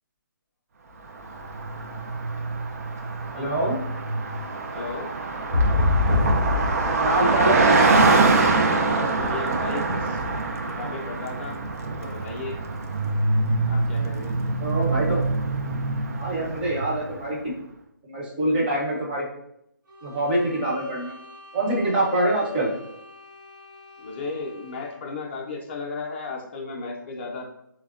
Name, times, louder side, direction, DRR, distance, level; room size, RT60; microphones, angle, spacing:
Car passing by, 1.2-17.2, right 3 dB, 45° right, 0.4 m, -24 dB
voice 1, 3.3-3.8 7.0-7.8 14.6-15.2 16.1-17.4 18.0-19.2 20.0-21.1 21.5-22.7, right 1 dB, 30° right, -4 dB, 1.0 m, -25 dB
voice 2, 4.7-5.1 8.9-10.2 10.7-11.6 12.0-12.6 13.7-14.4 24.0-27.4, left 3 dB, 30° left, 1 dB, 0.5 m, -35 dB
sound 1, 5.5-9.5 9.8-10.9 11.2-12.0 12.3-12.4, left 2 dB, 85° right, 0.7 m, -26 dB
sound 2, 19.8-25.1, left 1 dB, 65° right, 1.0 m, -47 dB
3.3 x 2.1 x 2.3 m, 0.77 s
hypercardioid pair, 155°, 11 cm